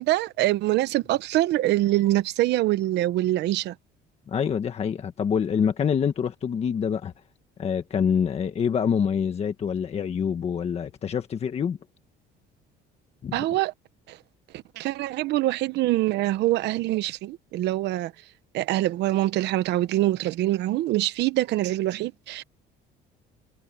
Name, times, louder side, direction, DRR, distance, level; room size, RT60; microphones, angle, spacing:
voice 1, 0.0-3.7 13.3-13.7 14.1-14.2 14.5-18.1 18.5-22.4, right 15 dB, 65° right, 0.9 m, -24 dB
voice 2, 4.3-7.1 7.6-11.8 13.2-13.4, left 7 dB, 35° left, 1.5 m, -26 dB
cardioid pair, 140°, 19 cm